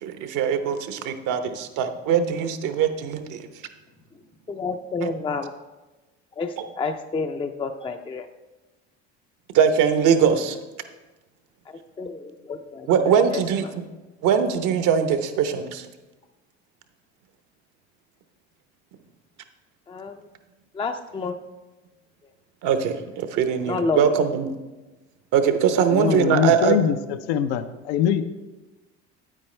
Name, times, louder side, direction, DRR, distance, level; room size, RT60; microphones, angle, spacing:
voice 1, 0.0-3.5 5.0-5.1 9.5-10.6 12.9-13.6 14.2-15.9 22.6-24.5 25.3-26.8, right 7 dB, 60° right, 9 dB, 0.9 m, -21 dB
voice 2, 4.5-5.5 6.3-8.3 11.7-13.7 19.9-20.3 20.7-21.4 23.7-24.4, left 4 dB, 15° left, 6 dB, 0.5 m, -30 dB
voice 3, 25.9-28.2, left 9 dB, 80° left, 11 dB, 0.6 m, -23 dB
9.0 x 8.7 x 3.2 m, 1.2 s
hypercardioid pair, 75°, 34 cm